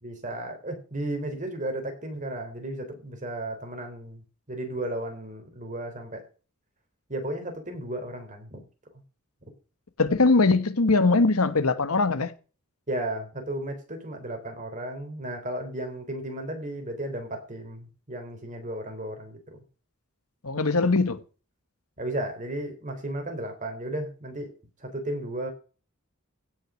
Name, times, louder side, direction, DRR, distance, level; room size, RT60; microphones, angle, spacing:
voice 1, 0.0-6.2 7.1-8.6 12.9-19.6 22.0-24.5 24.8-25.5, right 1 dB, 35° right, 3.9 m, -34 dB
voice 2, 10.0-12.3 20.4-21.2, left 3 dB, 80° left, 1.3 m, -21 dB
16.0 x 6.4 x 6.4 m
head